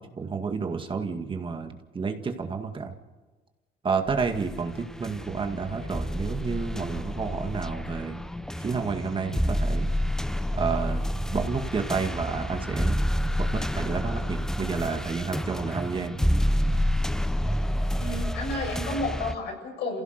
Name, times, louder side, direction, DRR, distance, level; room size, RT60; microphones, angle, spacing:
voice 1, 0.0-2.9 3.8-8.2 8.6-9.9 10.6-11.0 11.3-13.0 13.4-16.2, right 5 dB, 30° right, 5 dB, 2.0 m, -30 dB
sound 1, 4.1-19.4, equal, 5° left, 0.7 m, -29 dB
voice 2, 18.0-20.0, left 2 dB, 75° left, 2 dB, 7.5 m, -31 dB
28.5 x 16.5 x 6.7 m, 1.2 s
cardioid pair, 110°, 17 cm